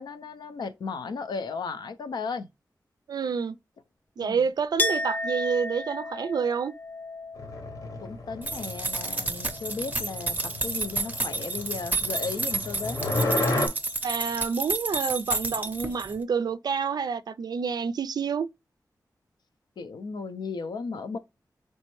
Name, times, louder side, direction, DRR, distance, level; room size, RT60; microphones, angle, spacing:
voice 1, 0.0-2.5 4.2-4.4 8.0-13.0 19.8-21.2, left 4 dB, 85° left, 0.5 m, -35 dB
voice 2, 3.1-3.6 4.2-6.7 14.0-18.5, right 6 dB, 70° right, 0.3 m, -28 dB
Chink clink, 4.8-10.3 10.6-11.5, left 2 dB, 25° left, 0.4 m, -35 dB
sound 1, 7.4-13.7, left 2 dB, 60° left, 0.9 m, -32 dB
sound 2, 8.4-16.2, right 3 dB, 25° right, 0.5 m, -31 dB
4.2 x 3.2 x 3.0 m
wide cardioid pair, 100°, 7 cm